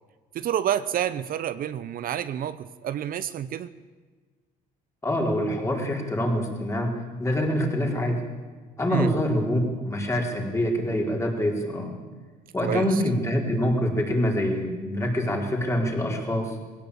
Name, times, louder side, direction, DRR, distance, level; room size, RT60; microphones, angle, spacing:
voice 1, 0.3-3.7 8.9-9.1 12.6-13.0, right 10 dB, 60° right, 14 dB, 0.8 m, -28 dB
voice 2, 5.0-8.2 8.8-12.0 12.5-16.6, equal, 15° left, 1 dB, 4.5 m, -25 dB
20.0 x 17.5 x 8.6 m, 1.4 s
cardioid pair, 110°, 17 cm